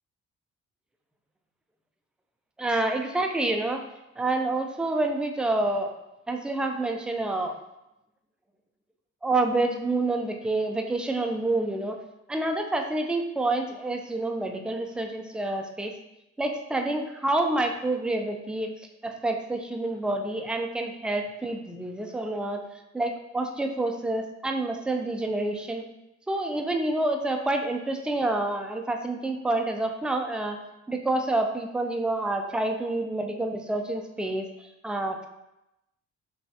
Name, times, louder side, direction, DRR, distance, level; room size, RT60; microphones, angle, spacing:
voice 1, 2.6-3.8 4.2-6.0 6.3-7.5 9.2-12.0 12.3-15.9 16.4-18.7 19.0-22.6 22.9-25.9 26.3-30.6 30.9-35.3, right 2 dB, 5° right, 4 dB, 0.4 m, -28 dB
5.7 x 2.3 x 2.7 m, 0.91 s
cardioid pair, 90°, 30 cm